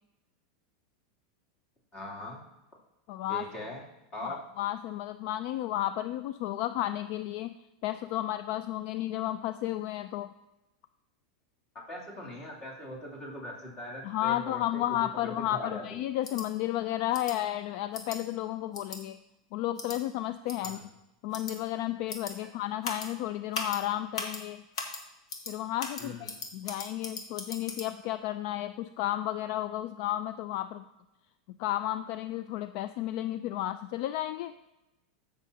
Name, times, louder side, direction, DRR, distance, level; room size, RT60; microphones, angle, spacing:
voice 1, 1.9-2.4 3.3-3.8 4.1-4.4 11.9-14.8 15.2-16.0 20.6-20.9 26.0-26.3, left 1 dB, 25° left, -3 dB, 2.9 m, -41 dB
voice 2, 3.1-3.5 4.2-7.6 7.8-10.3 14.0-19.2 19.5-20.9 21.2-24.6 25.5-30.9 31.5-34.5, left 14 dB, 55° left, 11 dB, 0.3 m, -33 dB
sound 1, 16.2-16.4 17.1-17.3 17.9-18.2 18.7-19.0 19.8-20.0 20.5-20.7 21.3-21.5 22.1-22.3 22.8-23.1 23.5-23.8 24.1-24.4 24.7-25.0 25.3-25.5 25.8-27.9, left 4 dB, 85° left, 1.5 m, -37 dB
14.5 x 6.0 x 2.8 m, 0.99 s
supercardioid pair, 130°, 3 cm